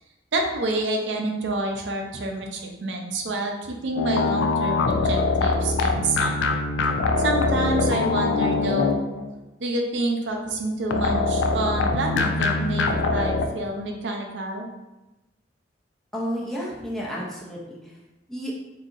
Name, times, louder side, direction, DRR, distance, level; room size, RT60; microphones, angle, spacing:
voice 1, 0.3-6.4 7.2-9.1 9.6-14.7, right 2 dB, 85° right, 2 dB, 0.5 m, -28 dB
sound 1, 4.0-9.3 10.9-13.5, left 3 dB, 85° left, 0.3 m, -23 dB
voice 2, 16.1-17.9 18.3-18.5, equal, ahead, -6 dB, 0.6 m, -31 dB
3.9 x 2.7 x 2.6 m, 1.0 s
head